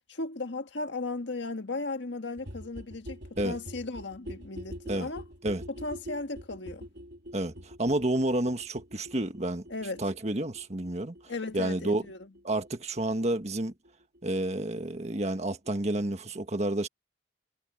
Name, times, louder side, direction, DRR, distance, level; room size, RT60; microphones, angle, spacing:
voice 1, 0.1-5.2 5.7-6.9 9.7-10.0 11.3-12.3, left 3 dB, 85° left, 1.7 m, -36 dB
sound 1, 2.4-13.9 14.1-14.2 14.4-14.5 14.7-14.8 15.0-15.1 15.3-15.4 15.6-15.7, equal, 70° right, 3.2 m, -45 dB
voice 2, 7.3-9.6 10.0-11.1 11.5-12.0 12.4-13.7 14.2-16.9, right 1 dB, 40° right, 1.6 m, -30 dB
head